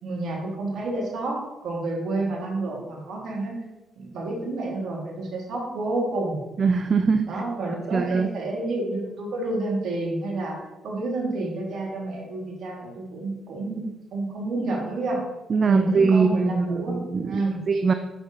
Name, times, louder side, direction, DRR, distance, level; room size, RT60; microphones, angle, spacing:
voice 1, 0.0-3.6 4.0-6.4 7.2-10.6 10.8-15.2 15.6-17.6, right 2 dB, 65° right, -2 dB, 1.8 m, -29 dB
voice 2, 6.6-7.4 7.9-8.3 15.5-17.9, right 5 dB, 50° right, 8 dB, 0.3 m, -22 dB
6.0 x 5.7 x 2.7 m, 1.0 s
hypercardioid pair, 45°, 0 cm